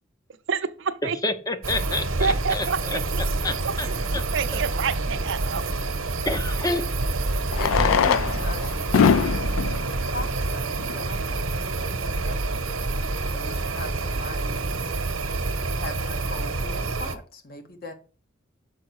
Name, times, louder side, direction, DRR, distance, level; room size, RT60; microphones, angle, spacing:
voice 1, 0.5-1.2 2.2-3.2 3.6-5.6, right 5 dB, 60° right, 0.5 m, -28 dB
voice 2, 1.2-3.9 4.1-4.2 4.5-4.6 6.2-6.8 8.0-8.4, left 2 dB, 20° left, 0.7 m, -29 dB
sound 1, 1.6-17.1, right 3 dB, 85° right, 0.9 m, -27 dB
Fireworks, 3.9-4.0 6.3-6.4 7.4-11.2 12.0-12.1 12.3-12.4 12.6-12.7 13.2-13.4, left 7 dB, 75° left, 0.3 m, -24 dB
voice 3, 7.6-9.5 10.1-12.6 13.3-14.9 15.8-17.9, left 2 dB, 45° left, 1.2 m, -39 dB
6.3 x 5.2 x 4.7 m
head